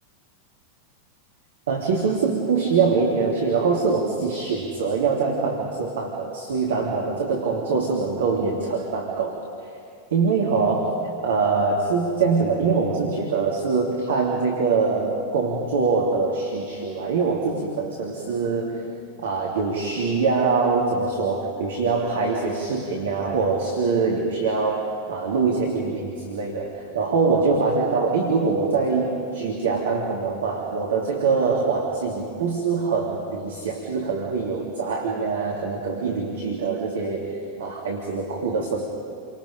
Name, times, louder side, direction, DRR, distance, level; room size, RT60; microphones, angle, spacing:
voice 1, 1.7-9.4 10.1-18.9 19.2-38.9, right 4 dB, 60° right, -1 dB, 2.7 m, -24 dB
30.0 x 25.0 x 5.1 m, 2.5 s
figure-of-eight pair, 90°, 0 cm